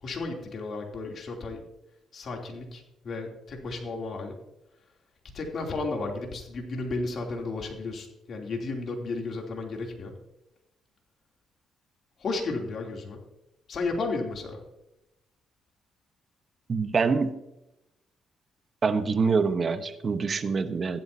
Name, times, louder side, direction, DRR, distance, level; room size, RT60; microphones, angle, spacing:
voice 1, 0.0-1.6 2.1-4.4 5.3-10.1 12.2-13.2 13.7-14.6, left 3 dB, 55° left, 1 dB, 3.0 m, -33 dB
voice 2, 16.7-17.3 18.8-21.0, right 5 dB, 40° right, 10 dB, 1.1 m, -25 dB
15.5 x 12.0 x 2.8 m, 0.90 s
cardioid pair, 90°, 0 cm